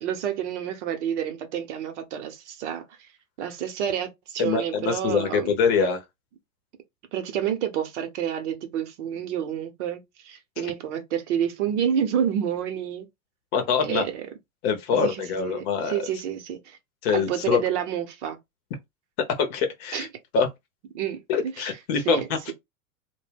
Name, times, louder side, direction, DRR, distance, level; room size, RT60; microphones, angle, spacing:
voice 1, 0.0-3.1 3.4-5.6 7.1-13.1 13.8-14.3 14.9-16.8 17.1-18.4 19.9-20.1 20.9-21.2 21.6-21.7 22.0-22.5, right 9 dB, 55° right, 0.9 m, -29 dB
voice 2, 4.4-6.0 10.6-10.7 13.5-14.0 14.6-15.9 17.0-17.6 19.4-20.1 20.3-20.5 21.3-22.5, left 6 dB, 45° left, 0.8 m, -24 dB
2.2 x 2.2 x 3.4 m
hypercardioid pair, 100°, 43 cm